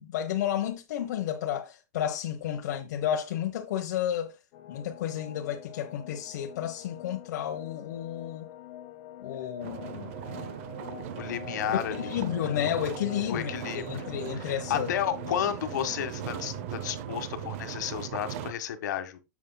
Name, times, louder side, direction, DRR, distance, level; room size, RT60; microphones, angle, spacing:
voice 1, 0.0-4.3 4.7-8.5 9.2-10.1 11.7-14.9, left 10 dB, 70° left, 1.2 m, -32 dB
sound 1, 4.5-17.7, left 11 dB, 40° left, 0.8 m, -46 dB
sound 2, 9.6-18.5, right 11 dB, 45° right, 0.7 m, -38 dB
voice 2, 11.2-12.2 13.2-14.1 14.4-19.2, left 10 dB, 85° left, 1.6 m, -32 dB
9.6 x 7.4 x 2.3 m
supercardioid pair, 180°, 9 cm